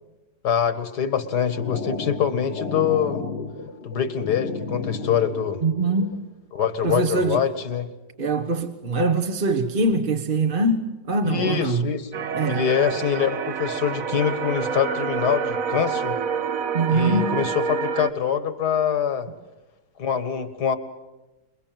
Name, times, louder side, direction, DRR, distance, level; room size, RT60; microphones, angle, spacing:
voice 1, 0.4-3.2 3.8-5.6 6.5-7.9 11.2-16.2 16.9-19.3 20.0-20.8, left 8 dB, 70° left, 2.2 m, -24 dB
sound 1, 1.2-6.1, left 4 dB, 85° left, 2.9 m, -33 dB
voice 2, 5.6-6.3 6.8-7.4 8.2-11.9 12.3-12.6 16.7-17.4, right 3 dB, 35° right, 1.2 m, -23 dB
sound 2, 12.1-18.1, right 7 dB, 55° right, 1.5 m, -28 dB
27.5 x 22.0 x 7.6 m
omnidirectional pair, 1.8 m